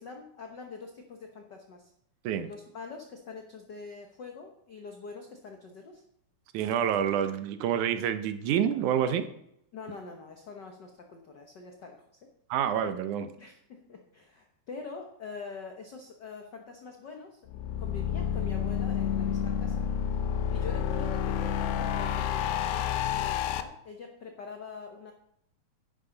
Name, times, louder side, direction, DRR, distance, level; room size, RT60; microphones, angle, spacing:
voice 1, 0.0-1.9 2.4-6.0 9.7-12.1 13.4-17.4 17.8-19.8 20.5-25.1, left 4 dB, 70° left, 3 dB, 1.0 m, -44 dB
voice 2, 6.5-9.3 12.5-13.3, right 9 dB, 80° right, 10 dB, 2.2 m, -28 dB
sound 1, 17.5-23.6, left 9 dB, 90° left, 2.3 m, -29 dB
11.5 x 10.5 x 3.9 m, 0.75 s
omnidirectional pair, 3.6 m